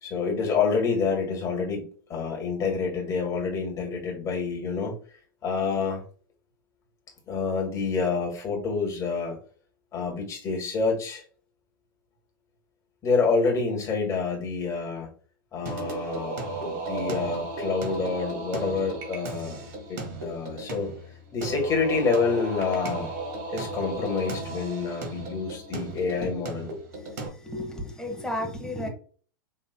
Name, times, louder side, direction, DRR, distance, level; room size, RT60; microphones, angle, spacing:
voice 1, 0.0-5.0 5.4-6.0 7.3-9.4 9.9-11.2 13.0-15.1 15.5-20.9 21.3-23.1 23.5-26.7, left 4 dB, 25° left, 0 dB, 1.9 m, -28 dB
Singing, 15.7-27.3, right 2 dB, 55° right, 1.6 m, -35 dB
voice 2, 27.4-28.9, left 1 dB, 5° left, 2 dB, 1.3 m, -32 dB
5.4 x 3.4 x 2.3 m, 0.42 s
figure-of-eight pair, 100°, 12 cm